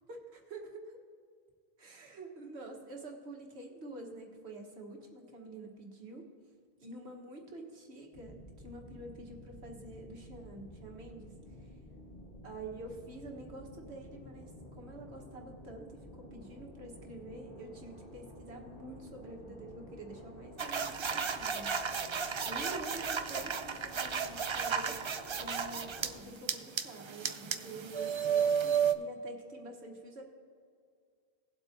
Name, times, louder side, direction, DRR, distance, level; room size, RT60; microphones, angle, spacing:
voice 1, 0.1-1.0 1.8-6.3 6.8-11.3 11.6-11.7 12.4-21.9 22.4-25.0 25.4-30.2, right 2 dB, 85° right, 1 dB, 1.7 m, -47 dB
sound 1, 8.1-26.2, equal, 55° left, 1.8 m, -51 dB
sound 2, 20.6-26.1 26.5-28.9, right 7 dB, 55° right, 0.3 m, -33 dB
18.5 x 7.8 x 2.8 m, 2.2 s
omnidirectional pair, 1.1 m